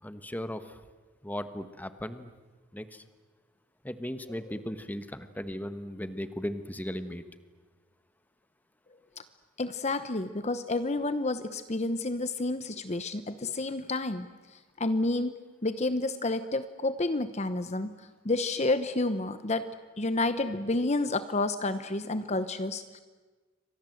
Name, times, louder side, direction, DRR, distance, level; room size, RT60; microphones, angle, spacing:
voice 1, 0.0-0.8 1.2-2.3 2.7-3.0 3.8-7.2, equal, 10° left, 11 dB, 1.2 m, -37 dB
voice 2, 9.6-14.3 14.8-15.4 15.6-17.9 18.2-19.7 20.0-23.0, left 2 dB, 35° left, 11 dB, 0.9 m, -30 dB
29.5 x 25.0 x 7.9 m, 1.4 s
head